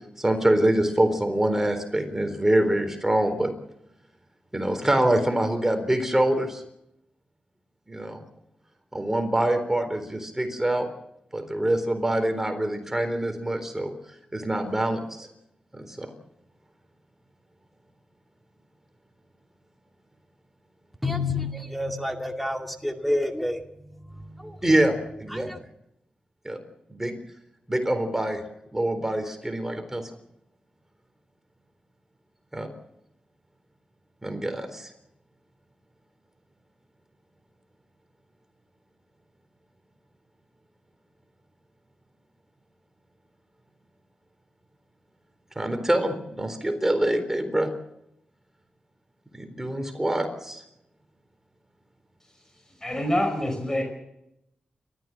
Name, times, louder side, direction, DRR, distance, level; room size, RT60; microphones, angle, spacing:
voice 1, 0.2-3.5 4.5-6.6 7.9-8.2 8.9-10.9 11.3-13.9 14.3-15.3 15.7-16.1 24.6-25.5 26.4-26.6 26.9-27.1 27.7-28.4 28.7-30.1 32.5-32.7 34.2-34.9 45.6-47.7 49.3-50.6, right 1 dB, 15° right, 7 dB, 3.9 m, -25 dB
voice 2, 21.0-23.6 24.0-24.6 25.3-25.6, left 2 dB, ahead, 4 dB, 2.2 m, -29 dB
voice 3, 52.8-53.8, left 1 dB, 15° left, 3 dB, 5.4 m, -25 dB
29.0 x 14.0 x 7.7 m, 0.83 s
cardioid pair, 75°, 3 cm